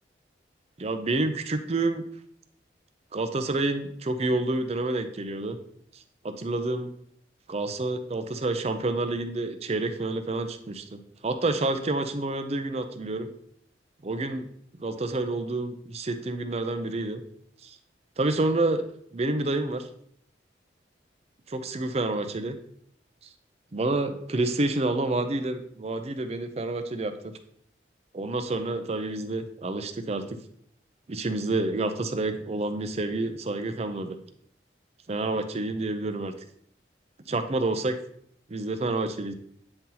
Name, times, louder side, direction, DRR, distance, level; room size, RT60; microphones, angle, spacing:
voice 1, 0.8-2.0 3.1-5.6 6.2-6.9 7.5-13.3 14.0-14.5 14.8-17.2 17.6-17.8 18.2-18.8 19.1-19.9 21.5-22.6 23.7-27.3 28.1-30.4 31.1-34.2 35.1-36.3 37.3-38.0 38.5-39.3, right 2 dB, 35° right, 8 dB, 0.5 m, -28 dB
8.7 x 3.9 x 2.8 m, 0.66 s
head